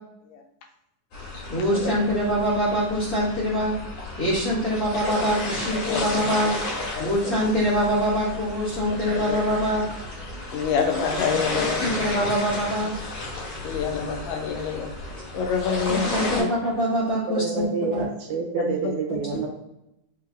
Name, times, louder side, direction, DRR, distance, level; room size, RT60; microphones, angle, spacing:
sound 1, 1.1-16.4, left 2 dB, 60° left, 2.4 m, -33 dB
voice 1, 1.5-3.8 4.2-6.5 7.0-9.8 11.8-12.9 15.9-17.7 17.9-18.1, equal, 40° left, -8 dB, 1.4 m, -24 dB
voice 2, 5.7-6.2 7.0-7.3 9.1-9.4 10.5-11.9 13.6-14.9 15.3-16.1 16.4-16.5 18.6-19.2, left 6 dB, 90° left, 4 dB, 2.2 m, -27 dB
voice 3, 17.4-19.5, right 4 dB, 75° right, 1 dB, 2.0 m, -27 dB
5.2 x 3.2 x 2.4 m, 0.85 s
omnidirectional pair, 3.6 m